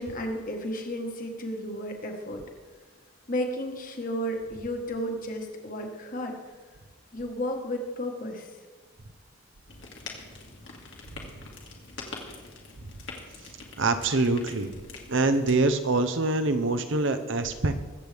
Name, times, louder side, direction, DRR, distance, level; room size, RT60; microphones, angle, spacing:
voice 1, 0.0-2.4 3.3-6.3 7.1-8.5, equal, 40° left, 3 dB, 1.5 m, -33 dB
sound 1, 9.7-15.5, left 3 dB, 60° left, 2.0 m, -44 dB
voice 2, 13.8-14.7 15.1-17.7, right 3 dB, 60° right, 9 dB, 0.8 m, -25 dB
22.0 x 8.0 x 3.5 m, 1.4 s
head